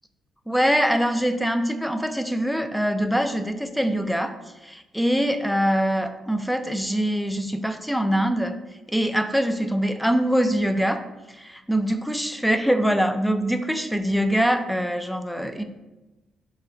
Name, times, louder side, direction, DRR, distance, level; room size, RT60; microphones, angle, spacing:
voice 1, 0.5-4.4 4.6-8.6 8.9-11.4 11.7-15.6, equal, ahead, 8 dB, 0.4 m, -23 dB
5.4 x 2.3 x 3.6 m, 1.1 s
cardioid pair, 90°, 0 cm